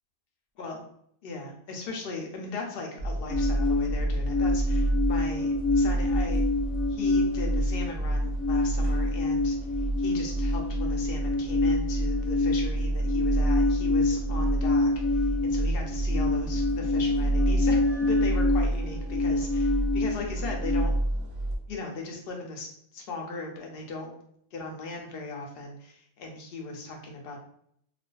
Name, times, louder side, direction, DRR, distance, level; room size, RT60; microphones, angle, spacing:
voice 1, 1.2-6.4 6.9-21.0 21.7-24.1 24.5-27.4, left 3 dB, 60° left, 1 dB, 0.8 m, -38 dB
sound 1, 3.0-21.6, right 1 dB, 65° right, 0.8 m, -29 dB
sound 2, 3.3-20.8, left 2 dB, 25° left, 0.4 m, -27 dB
2.4 x 2.2 x 2.3 m, 0.68 s
omnidirectional pair, 1.2 m